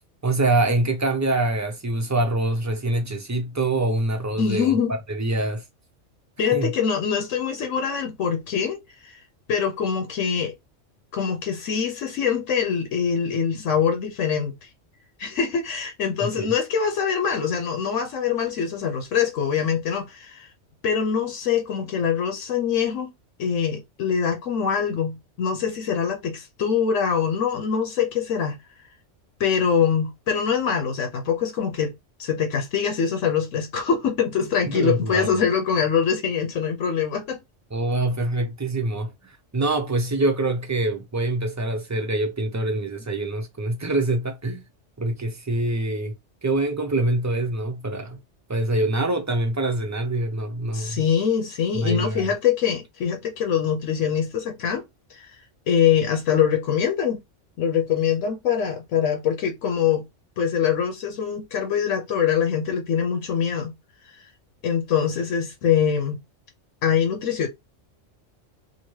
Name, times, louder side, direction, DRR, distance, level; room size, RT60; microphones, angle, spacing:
voice 1, 0.2-4.7 5.1-5.6 6.5-6.7 16.2-16.5 34.7-35.4 37.7-44.6 45.0-46.1 46.4-48.2 48.5-51.0 51.7-52.3, right 2 dB, 30° right, 0.3 m, -25 dB
voice 2, 4.4-5.0 6.4-9.2 9.5-10.5 11.1-14.5 15.2-20.5 20.8-23.1 23.4-28.6 29.4-31.9 32.2-37.4 50.7-54.8 55.1-55.4 55.7-57.2 57.6-60.0 60.4-63.7 64.6-66.2 66.8-67.5, left 7 dB, 85° left, 1.1 m, -24 dB
2.9 x 2.5 x 3.1 m
omnidirectional pair, 1.3 m